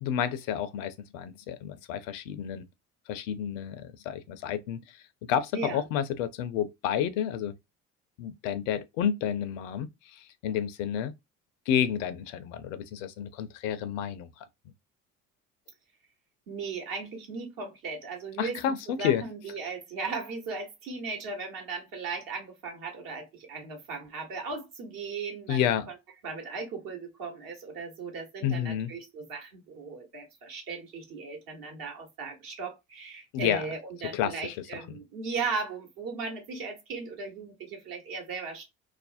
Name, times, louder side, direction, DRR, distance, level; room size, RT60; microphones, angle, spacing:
voice 1, 0.0-2.6 3.1-5.0 5.3-7.5 8.2-11.1 11.7-14.4 18.4-19.2 25.5-25.9 28.4-28.9 33.3-33.6 34.1-34.5 34.9-35.0, left 9 dB, 65° left, 0.5 m, -30 dB
voice 2, 5.5-5.8 16.5-25.9 26.2-38.6, right 4 dB, 55° right, 1.1 m, -37 dB
2.4 x 2.0 x 2.5 m
figure-of-eight pair, 55°, 42 cm